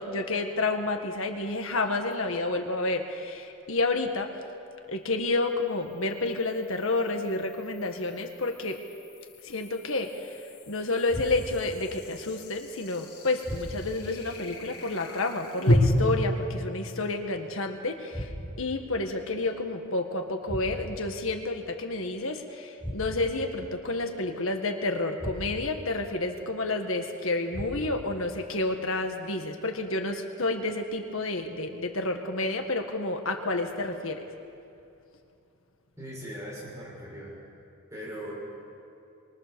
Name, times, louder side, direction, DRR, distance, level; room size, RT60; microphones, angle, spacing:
voice 1, 0.0-4.4 4.9-8.8 9.4-34.2, left 2 dB, 65° left, 5 dB, 1.7 m, -30 dB
sound 1, 2.1-2.2 5.6-15.8, equal, 90° left, 3.8 m, -35 dB
sound 2, 11.1-11.7 13.4-14.1 15.8-16.4 18.1-18.8 20.5-21.1 22.8-23.4 25.2-25.8 27.5-28.1, equal, 5° left, 5.0 m, -37 dB
voice 2, 36.0-37.4 37.9-38.3, equal, 15° right, -6 dB, 6.8 m, -39 dB
26.5 x 24.0 x 7.0 m, 2.6 s
head